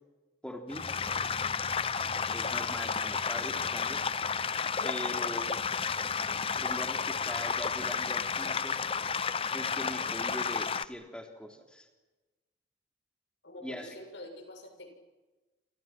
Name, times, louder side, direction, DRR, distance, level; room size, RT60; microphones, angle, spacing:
voice 1, 0.4-0.8 2.3-4.0 4.8-5.5 6.6-8.8 9.4-11.9 13.6-14.0, equal, 5° left, 3 dB, 3.6 m, -41 dB
sound 1, 0.7-10.8, left 6 dB, 30° left, 0.8 m, -32 dB
voice 2, 5.1-5.4 13.4-14.9, left 1 dB, 75° left, 5 dB, 6.9 m, -47 dB
28.0 x 28.0 x 6.2 m, 1.2 s
head